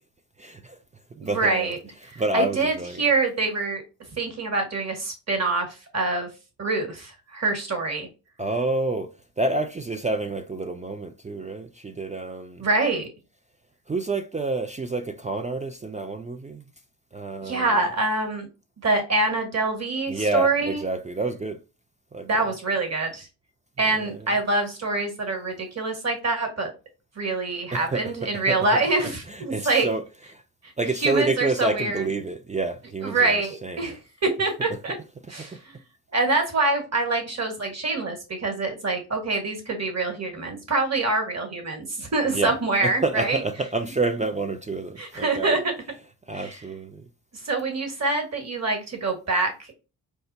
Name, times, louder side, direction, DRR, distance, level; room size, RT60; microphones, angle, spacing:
voice 1, 0.4-0.8 1.2-1.7 2.2-3.0 8.4-9.1 9.4-12.6 13.9-16.7 17.1-17.8 20.1-21.6 22.1-22.5 23.9-24.3 27.7-28.6 29.3-30.0 30.3-30.4 30.8-33.4 33.6-33.9 34.7-34.8 35.4-35.5 42.3-42.5 42.8-45.6 46.3-47.1, right 2 dB, 15° right, 0.4 m, -28 dB
voice 2, 1.2-1.8 2.1-3.8 4.2-6.3 6.6-8.1 12.6-13.1 17.4-18.5 18.8-20.8 22.2-23.3 23.8-26.7 27.2-29.9 31.0-32.0 33.0-34.9 35.3-35.8 36.1-43.4 45.0-45.7 46.3-46.6 47.5-49.7, right 3 dB, 35° right, 1.7 m, -25 dB
4.7 x 2.1 x 2.7 m
supercardioid pair, 50°, 45 cm